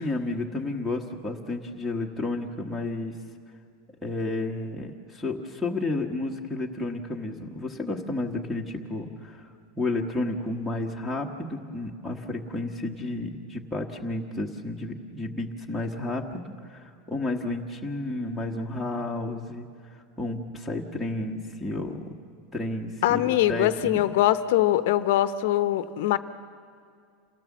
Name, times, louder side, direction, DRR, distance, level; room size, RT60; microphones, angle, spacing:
voice 1, 0.0-3.1 4.0-9.5 9.8-19.7 19.9-22.2 22.5-24.1, left 2 dB, ahead, 4 dB, 1.2 m, -31 dB
voice 2, 23.0-26.2, left 13 dB, 65° left, 13 dB, 0.8 m, -22 dB
28.0 x 16.5 x 7.3 m, 2.3 s
supercardioid pair, 175°, 0 cm